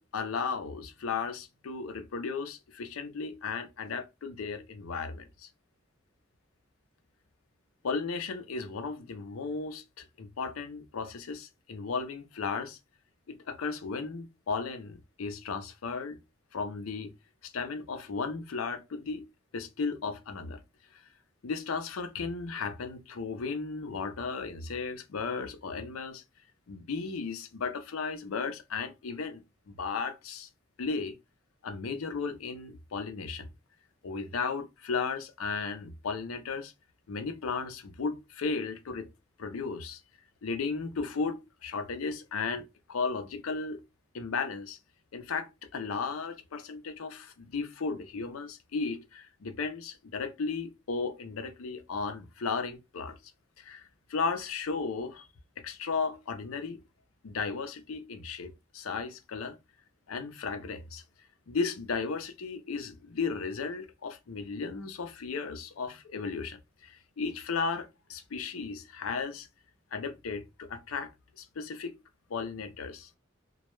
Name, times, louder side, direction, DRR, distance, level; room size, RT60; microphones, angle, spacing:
voice 1, 0.0-5.5 7.8-12.8 13.3-16.2 16.5-17.1 17.4-19.3 19.5-20.6 20.9-21.0 21.4-26.2 26.7-30.5 30.8-31.1 31.6-33.5 34.0-36.7 37.1-39.1 39.4-40.0 40.4-43.8 44.1-44.8 45.1-53.2 53.6-53.8 54.1-55.3 55.6-56.8 57.2-59.6 60.1-61.0 61.5-69.5 69.9-71.1 71.4-72.0 72.3-73.1, left 4 dB, 85° left, 0.5 m, -35 dB
2.2 x 2.1 x 3.0 m
head